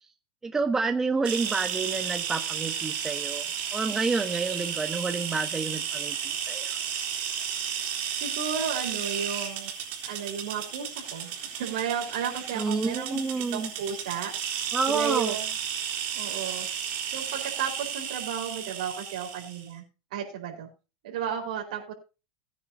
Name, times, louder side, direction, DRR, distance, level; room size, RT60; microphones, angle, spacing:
voice 1, 0.4-3.4 3.7-6.2 6.4-6.7 12.5-13.7 14.7-15.4, right 4 dB, 10° right, 7 dB, 1.3 m, -29 dB
sound 1, 1.2-19.6, right 8 dB, 40° right, 4.0 m, -33 dB
voice 2, 8.1-9.7 10.0-13.2 13.5-15.5 16.1-16.7 17.1-19.8 20.1-20.7 21.0-21.9, right 8 dB, 75° right, 0 dB, 4.7 m, -33 dB
18.5 x 9.8 x 2.8 m, 0.31 s
supercardioid pair, 160°, 4 cm